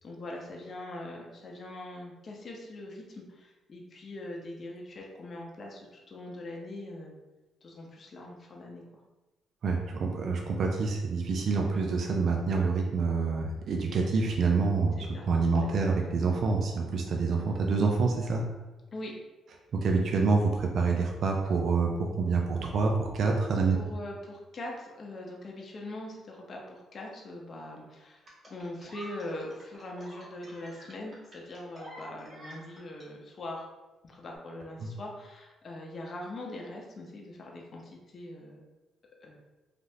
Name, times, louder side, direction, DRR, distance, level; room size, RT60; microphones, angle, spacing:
voice 1, 0.0-7.1 7.6-8.8 15.0-15.7 18.9-19.1 23.7-33.6 34.0-38.7 39.2-39.4, left 1 dB, 45° left, -1 dB, 0.6 m, -42 dB
voice 2, 9.6-15.0 15.2-18.4 19.7-23.8 34.8-34.9, right 4 dB, 60° right, 1 dB, 0.4 m, -27 dB
sound 1, 28.3-33.1 34.2-34.4, right 1 dB, 35° right, 1.4 m, -48 dB
3.2 x 2.5 x 2.7 m, 1.1 s
cardioid pair, 90°, 0 cm